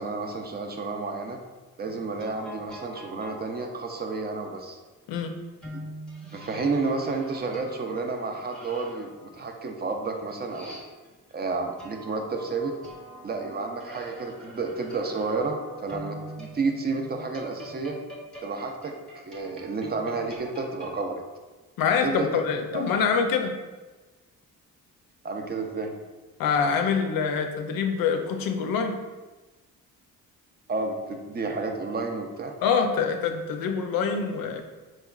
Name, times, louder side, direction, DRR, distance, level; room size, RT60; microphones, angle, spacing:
voice 1, 0.0-1.4 1.8-4.8 6.2-10.8 11.3-12.8 13.2-18.0 18.4-21.2 22.0-22.4 22.7-22.8 25.2-25.9 30.7-32.5, right 3 dB, 30° right, 4 dB, 0.4 m, -31 dB
sound 1, 1.8-4.4 5.6-11.3 11.8-21.0, right 1 dB, ahead, 0.7 m, -44 dB
voice 2, 21.8-23.5 26.4-29.0 32.6-34.6, left 6 dB, 85° left, 6 dB, 0.5 m, -25 dB
4.4 x 3.0 x 2.3 m, 1.2 s
cardioid pair, 115°, 34 cm